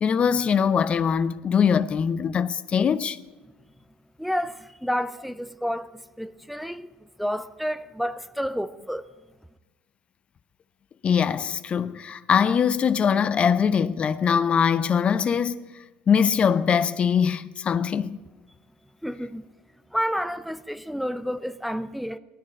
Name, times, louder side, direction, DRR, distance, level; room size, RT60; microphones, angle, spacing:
voice 1, 0.0-3.2 11.0-15.6 16.1-18.2, left 7 dB, 35° left, 0.6 m, -22 dB
voice 2, 4.2-5.9 6.2-6.9 7.2-9.1 19.0-19.4 19.9-22.2, equal, ahead, 0.5 m, -30 dB
17.0 x 13.5 x 5.3 m
supercardioid pair, 95°, 3 cm